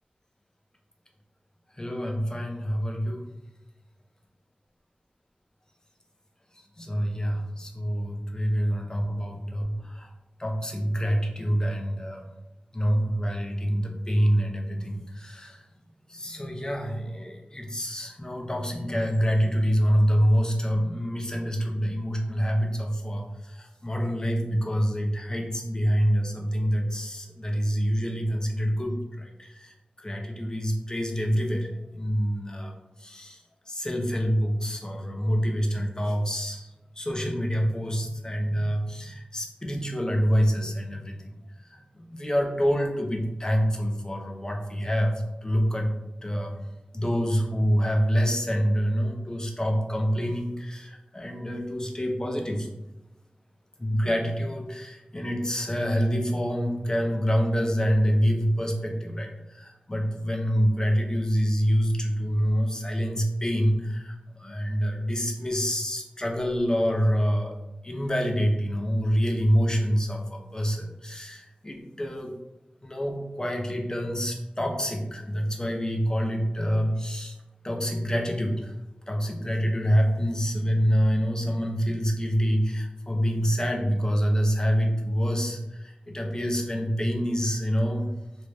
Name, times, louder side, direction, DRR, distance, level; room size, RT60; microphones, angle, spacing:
voice 1, 1.8-3.3 6.8-10.1 10.4-12.3 12.7-15.6 16.1-29.7 30.0-32.7 33.0-33.4 33.7-36.7 37.0-41.2 41.7-45.1 45.4-45.9 46.2-46.6 46.9-52.7 53.8-67.6 67.8-72.3 72.8-77.4 77.6-78.7 79.1-88.1, equal, 25° left, 2 dB, 0.5 m, -26 dB
2.5 x 2.1 x 3.2 m, 0.97 s
wide cardioid pair, 55°, 3 cm